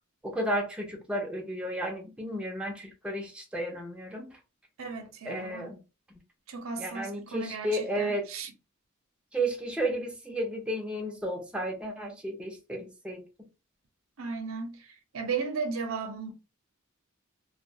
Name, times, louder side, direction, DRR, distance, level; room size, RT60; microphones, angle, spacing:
voice 1, 0.2-4.4 5.3-5.8 6.8-8.3 9.3-13.5, right 1 dB, 5° right, 0.5 m, -33 dB
voice 2, 4.8-5.7 6.5-8.5 14.2-16.3, right 5 dB, 85° right, 0.6 m, -35 dB
2.2 x 2.1 x 2.6 m
head